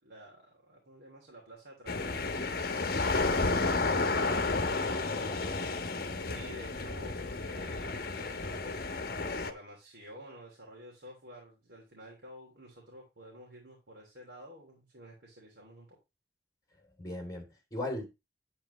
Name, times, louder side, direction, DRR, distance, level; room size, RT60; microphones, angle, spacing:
voice 1, 0.0-2.8 6.3-8.8 9.2-16.0, equal, 80° right, 3.2 m, -51 dB
sound 1, 1.9-9.5, left 3 dB, 60° left, 1.1 m, -32 dB
voice 2, 3.7-4.4 4.8-5.7 17.0-18.1, left 1 dB, 20° left, 3.3 m, -40 dB
9.9 x 8.8 x 3.2 m
head